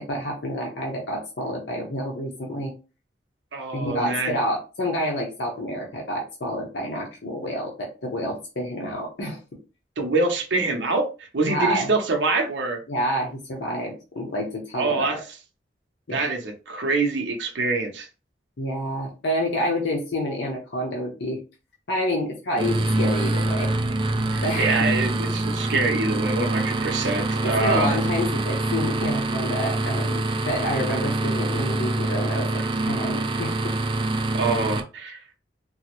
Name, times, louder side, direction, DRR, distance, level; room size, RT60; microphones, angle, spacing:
voice 1, 0.0-2.7 3.7-9.4 11.4-11.9 12.9-15.2 16.1-16.3 18.6-21.4 21.9-23.7 24.4-24.7 27.4-33.7, equal, 70° left, 0.8 m, -28 dB
voice 2, 3.5-4.3 10.0-12.8 14.8-15.2 16.1-18.1 24.3-28.0 34.3-35.2, right 3 dB, 75° right, 0.7 m, -25 dB
sound 1, 22.6-34.8, right 2 dB, 30° right, 0.4 m, -25 dB
3.9 x 2.0 x 2.9 m
head